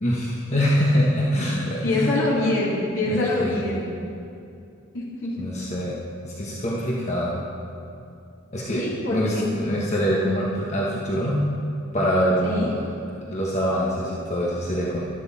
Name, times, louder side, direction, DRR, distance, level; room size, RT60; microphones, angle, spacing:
voice 1, 0.0-2.1 3.1-3.6 5.4-6.0 6.2-7.4 8.5-8.8 9.1-11.5 11.9-12.7 13.3-15.0, equal, 35° left, -5 dB, 1.3 m, -24 dB
voice 2, 1.8-3.9 4.9-5.3 8.7-9.5 12.4-12.7, left 2 dB, 70° left, -7 dB, 3.5 m, -24 dB
13.0 x 12.0 x 4.2 m, 2.6 s
head